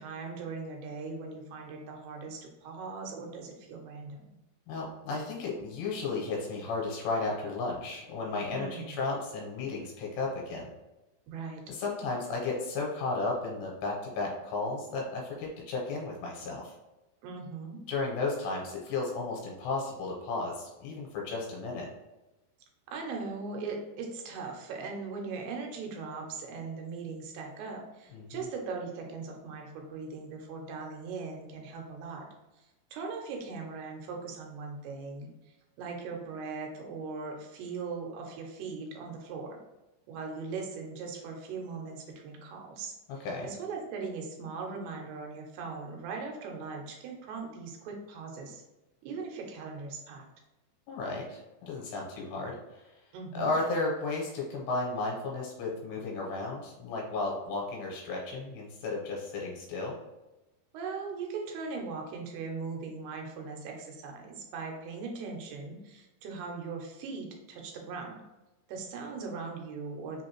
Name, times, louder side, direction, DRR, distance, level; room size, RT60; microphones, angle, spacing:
voice 1, 0.0-4.4 8.5-9.0 11.3-11.6 17.2-17.8 22.9-32.3 32.6-32.7 32.9-35.3 35.8-39.6 40.1-48.6 49.0-50.3 53.1-53.5 60.7-68.2 68.7-70.2, right 4 dB, 80° right, 1 dB, 2.7 m, -39 dB
voice 2, 4.7-10.7 11.7-16.7 17.9-21.9 28.1-28.5 43.1-43.5 50.9-52.8 53.3-59.9, left 3 dB, 90° left, -2 dB, 3.0 m, -34 dB
6.1 x 2.8 x 3.0 m, 1.0 s
omnidirectional pair, 4.7 m